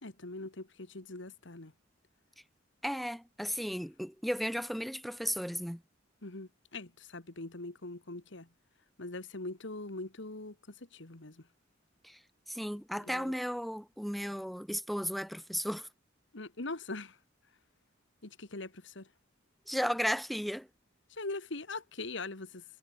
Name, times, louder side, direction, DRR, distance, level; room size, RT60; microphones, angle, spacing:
voice 1, 0.0-1.7 6.2-8.5 9.0-10.5 10.9-11.4 13.0-13.3 16.3-17.1 18.2-19.1 21.2-22.6, left 2 dB, 70° left, 2.0 m, -42 dB
voice 2, 2.8-5.8 12.0-12.2 12.5-15.9 19.7-20.7, equal, ahead, 1.9 m, -34 dB
head